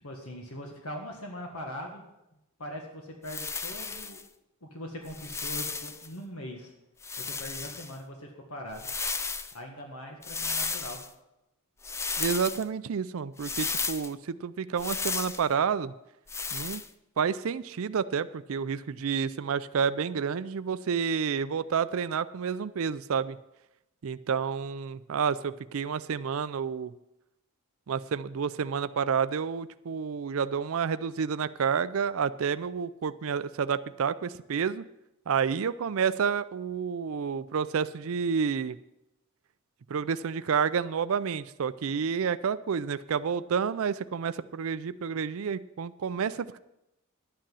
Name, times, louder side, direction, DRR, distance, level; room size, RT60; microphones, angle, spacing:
voice 1, 0.0-2.0 2.6-4.2 4.6-6.7 7.2-8.9 9.5-11.0, equal, 75° left, 2 dB, 1.6 m, -41 dB
sound 1, 3.3-4.2 5.1-6.1 7.0-7.9 8.7-9.5 10.2-11.1 11.8-12.6 13.4-14.1 14.8-15.4 16.3-16.9, left 4 dB, 10° left, 0.4 m, -34 dB
voice 2, 12.2-15.9 16.5-16.8 17.2-23.4 24.0-26.9 27.9-34.9 35.3-38.8 39.9-46.6, right 6 dB, 65° right, 14 dB, 0.4 m, -29 dB
11.5 x 9.1 x 5.6 m, 0.89 s
head